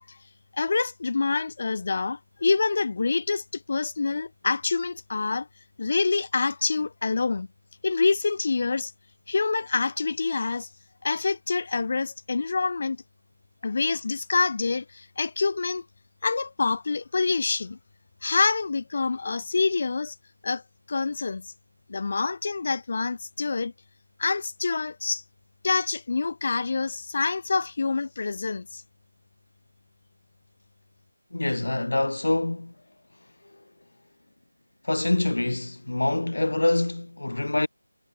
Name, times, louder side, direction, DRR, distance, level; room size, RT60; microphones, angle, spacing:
voice 1, 0.5-5.5 5.8-7.5 7.8-8.9 9.3-10.7 11.0-13.0 13.6-15.9 16.2-17.8 18.2-20.1 20.4-20.6 20.9-21.5 21.9-23.7 24.2-25.2 25.6-28.8, left 4 dB, 40° left, 3.9 m, -26 dB
voice 2, 31.3-32.7 34.9-37.7, left 2 dB, 70° left, 1.8 m, -25 dB
figure-of-eight pair, 170°, 0 cm